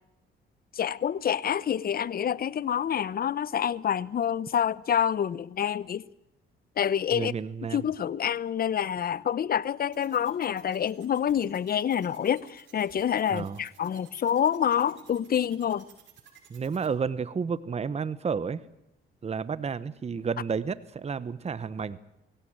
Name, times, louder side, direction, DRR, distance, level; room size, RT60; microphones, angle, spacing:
voice 1, 0.8-6.0 6.8-7.3 7.7-12.5 12.7-15.8, left 9 dB, 50° left, 0.8 m, -27 dB
voice 2, 7.1-7.9 13.3-13.6 16.5-18.6 19.2-22.0, right 6 dB, 30° right, 1.0 m, -31 dB
sound 1, 9.9-16.9, right 9 dB, 70° right, 6.3 m, -55 dB
22.5 x 17.5 x 8.9 m
cardioid pair, 90°, 20 cm